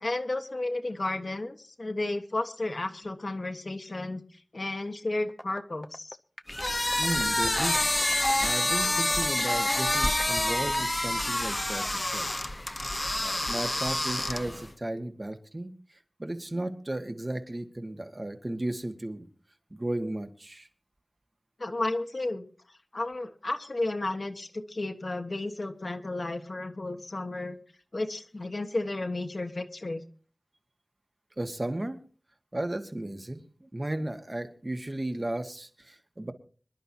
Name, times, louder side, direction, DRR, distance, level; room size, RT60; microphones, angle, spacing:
voice 1, 0.0-4.2 4.5-6.2 21.6-22.5 22.9-27.6 27.9-30.0, left 2 dB, 65° left, 5 dB, 1.5 m, -33 dB
sound 1, 5.3-10.9, equal, 10° left, 0.7 m, -43 dB
sound 2, 6.5-14.7, left 1 dB, 30° left, 1.1 m, -27 dB
voice 2, 7.0-7.8 8.4-12.3 12.7-12.9 13.2-19.3 19.7-20.7 31.4-32.0 32.5-36.3, right 1 dB, 40° right, 7 dB, 1.8 m, -35 dB
25.5 x 11.5 x 2.9 m, 0.39 s
wide cardioid pair, 55°, 0 cm